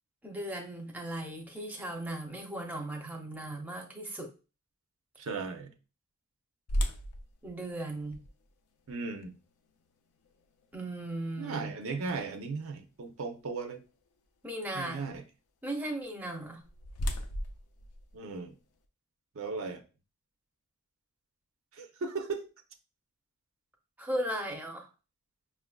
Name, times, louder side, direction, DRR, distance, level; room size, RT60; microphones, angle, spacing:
voice 1, 0.2-4.3 7.4-8.2 10.7-11.7 14.4-15.1 15.6-16.6 24.0-24.9, right 1 dB, 5° right, 0.6 m, -37 dB
voice 2, 5.2-5.7 8.9-9.4 11.4-13.8 14.7-15.2 18.1-18.5 19.4-19.8 21.7-22.4, right 4 dB, 65° right, 0.6 m, -36 dB
sound 1, 6.7-12.6 13.2-13.3 13.9-14.1 16.2-18.8, equal, 80° left, 0.5 m, -38 dB
5.4 x 2.4 x 2.2 m
head